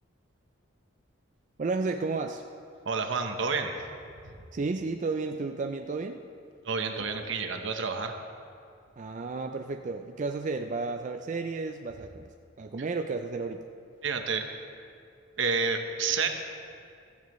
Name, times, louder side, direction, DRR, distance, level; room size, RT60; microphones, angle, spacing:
voice 1, 1.6-2.4 4.5-6.2 9.0-12.3 12.6-13.7, right 3 dB, 40° right, 5 dB, 0.4 m, -32 dB
voice 2, 2.8-3.7 6.6-8.2 14.0-14.4 15.4-16.3, right 4 dB, 75° right, 5 dB, 1.0 m, -29 dB
14.5 x 14.5 x 3.1 m, 2.4 s
head